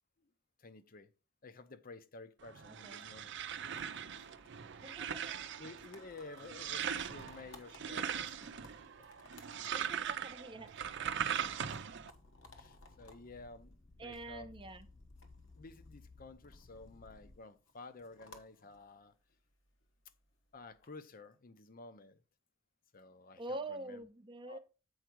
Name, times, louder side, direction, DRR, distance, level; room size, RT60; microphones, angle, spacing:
voice 1, 0.6-1.1 1.4-3.3 4.2-4.3 5.6-8.5 12.5-14.5 15.6-19.1 20.5-22.2 22.9-23.4 23.7-24.1 24.4-24.6, left 3 dB, 45° left, 0.7 m, -52 dB
sound 1, 2.4-12.1, right 8 dB, 65° right, 0.5 m, -40 dB
voice 2, 2.7-3.0 4.8-5.4 9.7-11.5 14.0-14.9 23.4-24.6, right 2 dB, 25° right, 0.7 m, -46 dB
sound 2, 3.7-20.9, left 2 dB, 70° left, 1.3 m, -61 dB
sound 3, 11.0-17.4, left 3 dB, 20° left, 0.4 m, -59 dB
8.0 x 4.8 x 4.5 m
head